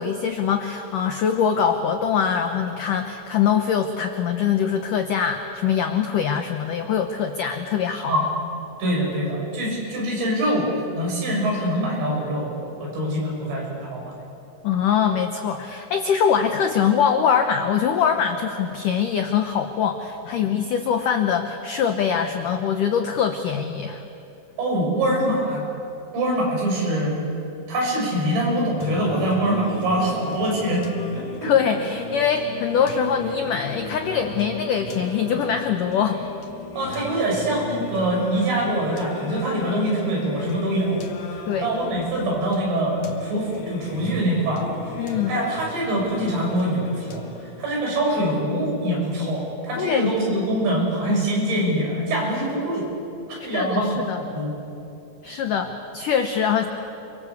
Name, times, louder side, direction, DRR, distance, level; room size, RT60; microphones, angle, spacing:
voice 1, 0.0-8.1 14.6-24.0 31.4-36.2 41.5-41.7 45.0-45.4 49.8-50.1 53.5-54.2 55.2-56.7, left 7 dB, 80° left, 6 dB, 1.8 m, -23 dB
voice 2, 8.8-10.7 10.9-14.1 24.6-25.6 26.1-27.2 27.7-30.8 31.1-31.5 36.8-44.7 45.3-52.9 53.3-54.5, right 1 dB, 70° right, -2 dB, 8.8 m, -24 dB
Singing, 28.8-47.8, left 2 dB, 50° left, 2.2 m, -36 dB
28.5 x 24.0 x 8.2 m, 2.8 s
omnidirectional pair, 5.4 m